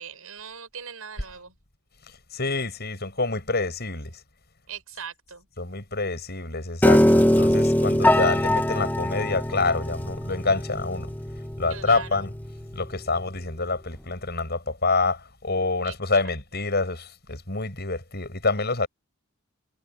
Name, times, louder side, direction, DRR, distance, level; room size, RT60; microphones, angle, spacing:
voice 1, 0.0-1.5 4.7-5.5 11.7-12.2 15.8-15.9, right 7 dB, 80° right, 7.0 m, -40 dB
voice 2, 2.1-4.2 5.6-11.1 11.6-12.3 12.7-18.9, left 3 dB, 50° left, 7.8 m, -27 dB
Piano, 6.8-13.0, left 1 dB, 10° left, 1.5 m, -22 dB
head